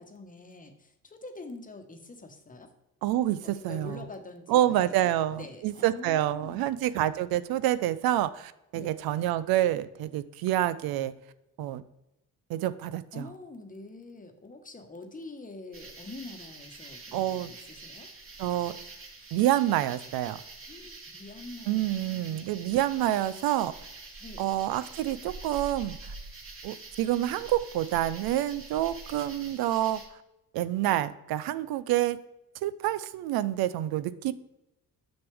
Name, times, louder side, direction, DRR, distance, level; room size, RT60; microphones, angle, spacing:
voice 1, 0.0-2.7 3.4-6.8 8.7-8.9 13.1-18.1 20.7-22.6 24.2-24.5, left 3 dB, 20° left, 6 dB, 1.1 m, -45 dB
voice 2, 3.0-4.0 4.5-11.1 11.6-11.8 12.5-13.2 17.1-17.5 18.4-18.7 19.3-20.4 21.7-23.7 24.4-26.0 26.6-30.0 30.5-32.2 32.6-34.3, right 13 dB, 80° right, 15 dB, 0.5 m, -27 dB
sound 1, 15.7-30.1, right 3 dB, 35° right, 1.8 m, -46 dB
6.6 x 6.1 x 3.4 m, 0.91 s
cardioid pair, 100°, 36 cm